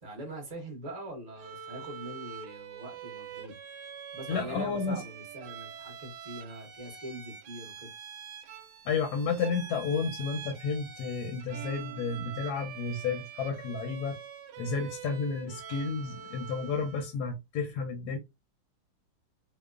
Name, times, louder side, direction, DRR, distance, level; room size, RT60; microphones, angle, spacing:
voice 1, 0.0-3.6 4.1-7.9, right 1 dB, 35° right, 0.7 m, -43 dB
Bowed string instrument, 1.4-17.2, right 8 dB, 75° right, 1.0 m, -45 dB
voice 2, 4.3-5.0 8.8-14.2 14.6-18.2, left 5 dB, 70° left, 1.0 m, -32 dB
3.0 x 2.1 x 2.3 m
omnidirectional pair, 2.0 m